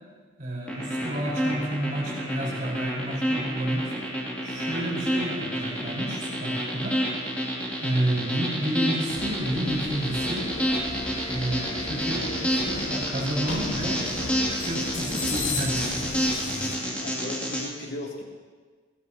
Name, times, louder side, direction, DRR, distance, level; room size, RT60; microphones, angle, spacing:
voice 1, 0.4-4.0 4.4-7.0 7.8-10.5 11.3-14.0 14.5-16.1, right 1 dB, 40° right, -4 dB, 4.5 m, -30 dB
sound 1, 0.7-17.6, equal, 5° left, 2.6 m, -28 dB
voice 2, 8.1-8.4 12.1-12.5 17.0-18.2, left 1 dB, 55° left, -2 dB, 2.6 m, -38 dB
sound 2, 9.1-16.8, left 2 dB, 75° left, 2.4 m, -35 dB
20.0 x 16.0 x 2.9 m, 1.5 s
head